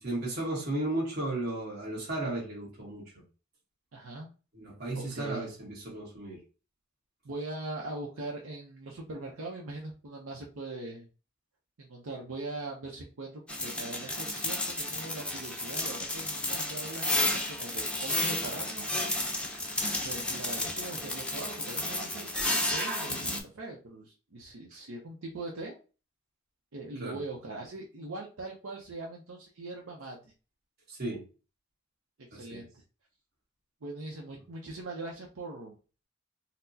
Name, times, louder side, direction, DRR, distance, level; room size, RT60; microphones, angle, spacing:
voice 1, 0.0-3.2 4.5-6.4 27.0-27.2 30.9-31.2 32.3-32.6, right 2 dB, 50° right, 1.4 m, -35 dB
voice 2, 3.9-4.3 4.9-5.5 7.2-11.1 11.8-18.9 20.0-25.8 26.7-30.2 32.3-32.8 33.8-35.8, right 2 dB, 80° right, 0.6 m, -41 dB
sound 1, 13.5-23.4, left 1 dB, 5° left, 0.5 m, -32 dB
4.2 x 2.0 x 2.7 m
head